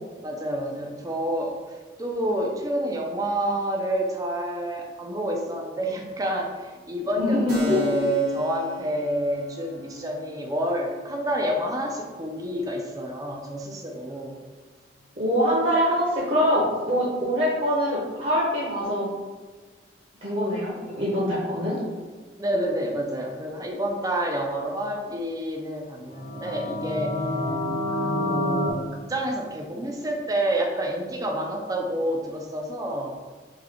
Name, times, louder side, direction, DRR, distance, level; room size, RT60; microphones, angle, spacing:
voice 1, 0.2-14.3 22.4-27.2 27.9-33.1, right 1 dB, 20° right, 1 dB, 0.4 m, -28 dB
voice 2, 7.2-7.8 15.2-19.1 20.2-21.8, equal, 40° right, -5 dB, 0.8 m, -24 dB
Keyboard (musical), 7.5-14.8, left 2 dB, 80° right, 1.2 m, -39 dB
sound 1, 26.1-28.7, left 1 dB, 40° left, 0.4 m, -27 dB
3.7 x 2.8 x 3.4 m, 1.4 s
head